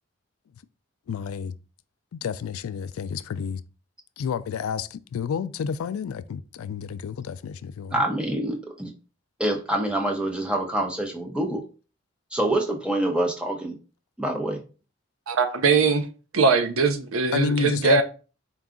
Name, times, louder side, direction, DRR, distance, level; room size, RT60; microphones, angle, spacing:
voice 1, 1.1-1.6 2.1-3.6 4.2-8.0 17.3-18.0, left 6 dB, 85° left, 0.3 m, -30 dB
voice 2, 7.9-8.9 9.4-11.6 12.3-13.8 14.2-14.6, right 1 dB, 5° right, 0.6 m, -26 dB
voice 3, 15.3-16.1 16.3-18.0, right 4 dB, 85° right, 0.6 m, -21 dB
4.6 x 2.3 x 3.7 m
head